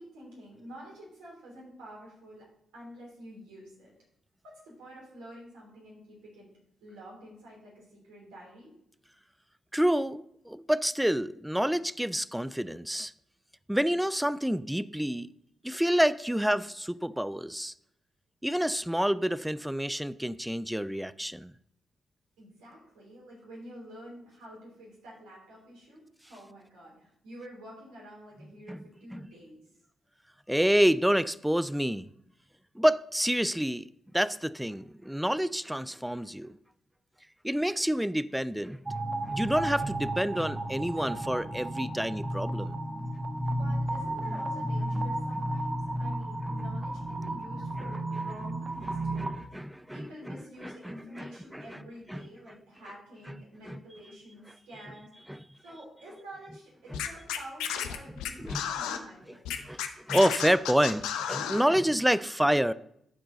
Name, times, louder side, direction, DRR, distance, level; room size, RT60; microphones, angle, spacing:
voice 1, 0.0-2.5 2.7-3.9 4.4-6.5 6.8-8.7 22.4-29.6 43.5-49.3 49.9-55.1 55.6-59.4, equal, 75° right, 3.2 m, -48 dB
voice 2, 9.7-13.1 13.7-15.3 15.6-17.7 18.4-21.5 28.7-28.8 29.1-29.3 30.5-32.1 32.8-33.9 34.1-36.6 37.4-38.8 39.3-42.8 45.4-45.5 47.8-47.9 49.2-51.8 52.1-52.3 53.3-53.4 53.7-53.8 55.3-55.4 56.9-57.0 58.4-58.7 59.6-62.7, equal, 5° right, 0.4 m, -28 dB
sound 1, 38.9-49.3, right 1 dB, 25° right, 1.1 m, -33 dB
Scratching (performance technique), 56.9-59.0 59.4-61.6, left 9 dB, 80° left, 0.6 m, -32 dB
12.0 x 4.6 x 3.8 m
hypercardioid pair, 40°, 0 cm